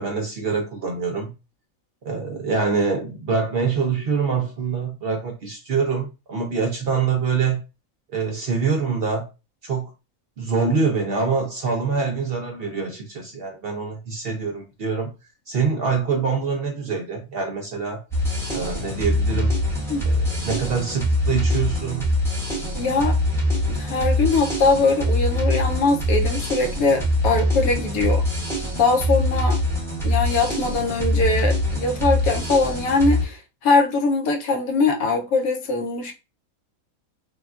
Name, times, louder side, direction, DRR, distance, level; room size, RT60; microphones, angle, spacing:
voice 1, 0.0-1.3 2.0-7.6 8.1-9.3 9.6-9.9 10.4-15.1 15.5-18.0 18.5-19.5 20.1-22.1, right 5 dB, 60° right, 0.6 m, -25 dB
sound 1, 18.1-33.3, left 1 dB, 5° left, 0.5 m, -23 dB
voice 2, 22.7-23.2 23.7-28.2 28.8-29.6 30.0-36.2, left 3 dB, 85° left, 1.1 m, -21 dB
3.5 x 2.3 x 2.3 m
omnidirectional pair, 1.5 m